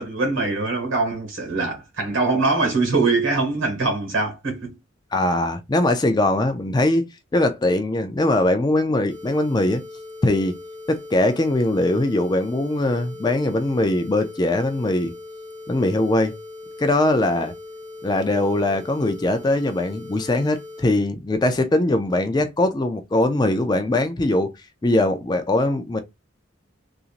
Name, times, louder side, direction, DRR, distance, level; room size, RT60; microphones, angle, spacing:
voice 1, 0.0-4.7, right 3 dB, 80° right, 1.6 m, -23 dB
voice 2, 5.1-7.1 7.3-9.8 10.2-10.6 10.9-15.1 15.7-16.4 16.8-17.5 18.0-24.5 24.8-26.0, left 1 dB, 20° left, 0.3 m, -21 dB
sound 1, 9.1-20.8, left 2 dB, 5° right, 1.3 m, -40 dB
2.9 x 2.5 x 2.4 m
head